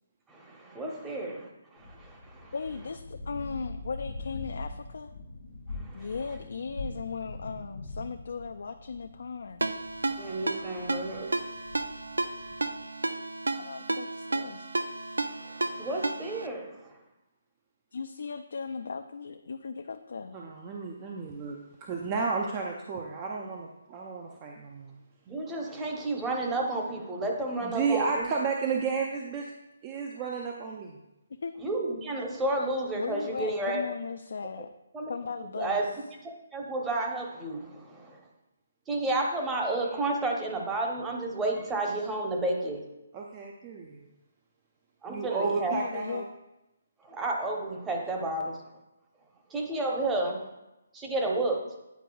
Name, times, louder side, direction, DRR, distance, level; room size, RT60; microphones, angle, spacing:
voice 1, 0.3-2.5 5.7-6.1 10.2-11.4 15.3-17.0 25.3-28.3 31.6-33.8 34.9-35.1 35.6-35.8 36.5-38.2 38.9-42.9 45.0-45.8 47.0-48.7 49.5-50.5 50.9-51.7, right 2 dB, 10° right, 0 dB, 0.8 m, -31 dB
sound 1, 1.8-12.8, left 2 dB, 85° left, 1.3 m, -43 dB
voice 2, 2.5-5.1 5.9-9.6 13.6-14.6 17.9-20.4 31.4-31.5 33.0-34.7 35.1-35.8 45.7-46.3, left 5 dB, 65° left, 7 dB, 0.3 m, -37 dB
Ringtone, 9.6-16.5, right 2 dB, 90° right, 0.4 m, -32 dB
voice 3, 20.3-25.0 27.6-29.5 29.8-31.0 43.1-44.1 45.1-46.2, right 5 dB, 25° right, 0 dB, 0.5 m, -32 dB
9.2 x 4.4 x 2.3 m, 0.95 s
figure-of-eight pair, 150°, 0 cm